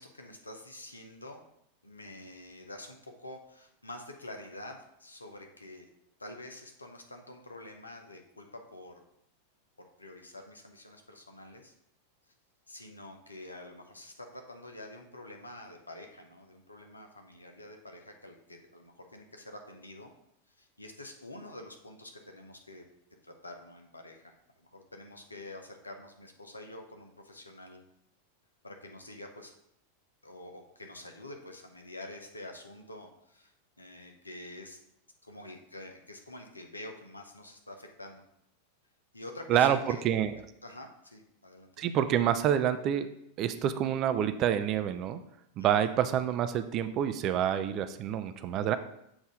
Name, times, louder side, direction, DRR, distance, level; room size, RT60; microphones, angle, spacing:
voice 1, 0.0-1.4 1.8-5.9 6.2-9.0 9.8-11.7 12.7-20.1 20.6-22.8 23.2-27.8 28.6-29.5 30.2-34.8 35.2-38.2 39.1-40.0 40.6-41.7 45.6-45.9, left 1 dB, 80° left, 3 dB, 0.8 m, -47 dB
voice 2, 39.5-40.3 41.8-43.1 43.4-45.2 45.6-48.8, right 10 dB, 35° right, 10 dB, 0.4 m, -27 dB
7.4 x 2.7 x 5.0 m, 0.76 s
figure-of-eight pair, 90°, 0 cm